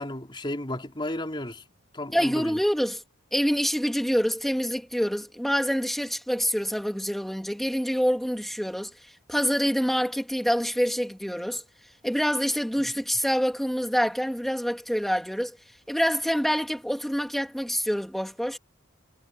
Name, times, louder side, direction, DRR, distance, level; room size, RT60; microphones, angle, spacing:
voice 1, 0.0-1.6 1.9-2.6, left 1 dB, 25° left, 3.9 m, -33 dB
voice 2, 2.1-3.0 3.3-8.9 9.3-11.6 12.0-15.6 15.9-18.6, equal, ahead, 3.0 m, -26 dB
head